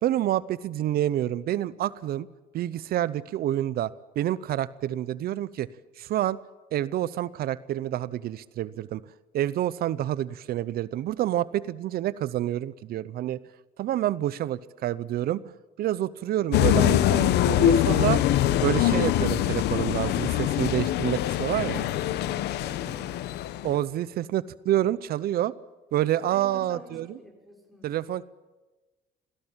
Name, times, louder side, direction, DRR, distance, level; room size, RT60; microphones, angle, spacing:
voice 1, 0.0-2.3 2.5-5.7 6.0-6.4 6.7-9.0 9.3-13.4 13.8-15.5 15.8-18.2 18.6-21.9 23.6-25.5 25.9-27.2 27.8-28.2, right 12 dB, 65° right, 19 dB, 0.7 m, -28 dB
sound 1, 16.5-23.8, left 12 dB, 80° left, 1.1 m, -23 dB
voice 2, 22.6-23.3 26.3-27.9, right 1 dB, ahead, 2 dB, 6.2 m, -47 dB
24.5 x 18.0 x 8.8 m, 1.2 s
cardioid pair, 110°, 17 cm